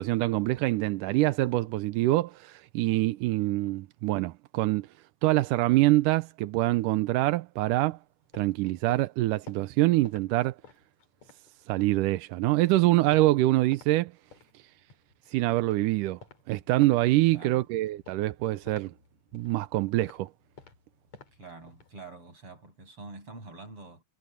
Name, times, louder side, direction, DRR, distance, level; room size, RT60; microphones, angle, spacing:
voice 1, 0.0-4.9 5.2-8.0 8.3-10.6 11.7-14.1 15.3-16.2 16.5-18.9 19.3-20.3, right 17 dB, 75° right, 1.9 m, -25 dB
sound 1, 7.7-12.1 12.4-13.9 14.2-22.0, left 5 dB, 45° left, 4.8 m, -54 dB
voice 2, 17.3-17.7 21.4-24.0, right 3 dB, 35° right, 8.9 m, -46 dB
omnidirectional pair, 4.4 m